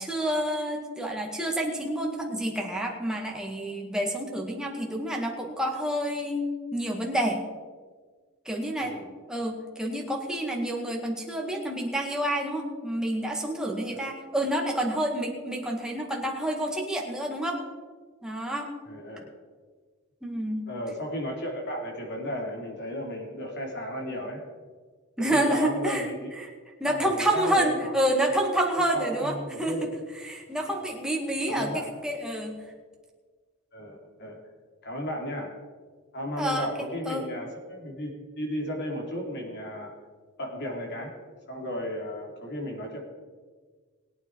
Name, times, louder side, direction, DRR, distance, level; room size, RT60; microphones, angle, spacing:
voice 1, 0.0-7.4 8.5-8.9 9.3-17.6 18.2-18.7 20.2-20.7 25.2-26.1 26.4-26.5 26.8-29.9 30.2-32.6 36.4-36.7 37.1-37.2, right 1 dB, 5° right, -1 dB, 2.0 m, -28 dB
voice 2, 8.8-9.1 13.9-14.1 18.9-19.3 20.7-24.4 25.2-26.3 26.8-28.0 28.3-28.4 28.9-29.9 31.5-31.9 33.7-34.4 34.8-35.5 36.1-39.9 40.4-41.1 41.5-43.0, equal, 50° left, 0 dB, 3.2 m, -34 dB
21.0 x 9.0 x 4.7 m, 1.5 s
head